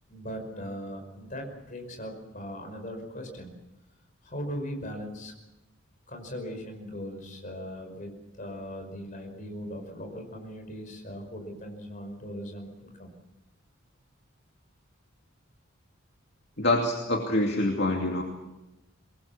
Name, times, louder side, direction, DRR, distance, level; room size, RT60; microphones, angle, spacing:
voice 1, 0.1-3.5 4.2-5.3 6.1-8.1 8.4-13.1, equal, 40° left, 4 dB, 5.4 m, -39 dB
voice 2, 16.6-18.2, left 2 dB, 55° left, 1 dB, 2.6 m, -25 dB
24.0 x 21.5 x 7.2 m, 0.98 s
head